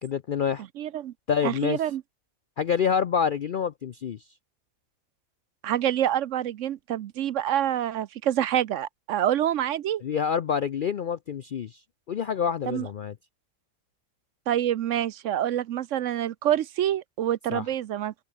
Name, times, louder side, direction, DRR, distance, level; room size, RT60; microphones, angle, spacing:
voice 1, 0.0-0.6 1.3-1.8 2.6-4.2 10.0-11.8 12.1-13.1 17.5-17.6, left 7 dB, 60° left, 0.5 m, -27 dB
voice 2, 0.8-1.1 1.4-2.0 5.6-10.0 12.7-12.9 14.5-18.1, right 11 dB, 65° right, 0.9 m, -26 dB
open air
omnidirectional pair, 1.5 m